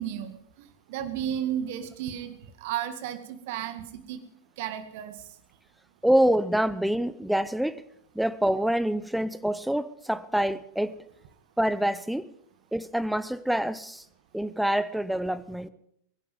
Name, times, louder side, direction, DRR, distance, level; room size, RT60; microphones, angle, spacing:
voice 1, 0.0-4.2 4.6-5.2, right 10 dB, 50° right, 1.9 m, -33 dB
voice 2, 6.0-7.8 8.1-11.0 11.6-12.3 12.7-14.0 14.3-15.7, right 1 dB, ahead, 0.9 m, -26 dB
22.5 x 11.0 x 5.4 m
figure-of-eight pair, 90°, 0 cm